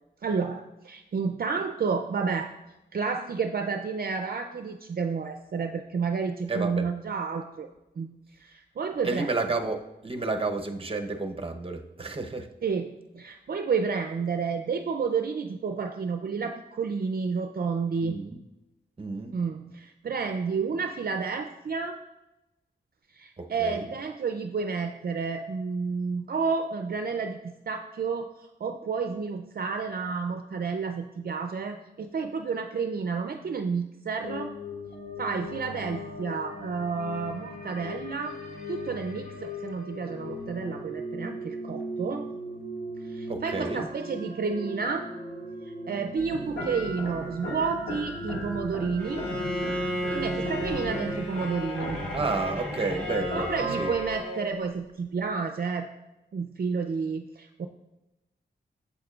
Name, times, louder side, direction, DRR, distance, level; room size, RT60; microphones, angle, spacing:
voice 1, 0.2-2.5 2.9-7.7 8.0-9.3 12.6-18.2 19.3-22.0 23.1-34.5 35.2-38.3 38.7-42.3 43.0-45.1 45.6-49.2 50.1-52.0 53.3-55.9 56.3-57.7, right 5 dB, 55° right, 6 dB, 0.4 m, -30 dB
voice 2, 6.5-6.9 9.0-12.5 18.0-18.4 19.0-19.3 23.4-23.9 43.3-43.9 52.1-53.5 53.8-53.9, right 3 dB, 30° right, 5 dB, 0.8 m, -31 dB
sound 1, 34.2-51.2, left 1 dB, 60° left, 1.9 m, -39 dB
sound 2, 46.2-54.2, equal, 80° left, 1.9 m, -37 dB
Bowed string instrument, 49.0-54.5, equal, 5° left, 2.5 m, -33 dB
8.6 x 7.3 x 2.4 m, 0.97 s
wide cardioid pair, 75°, 19 cm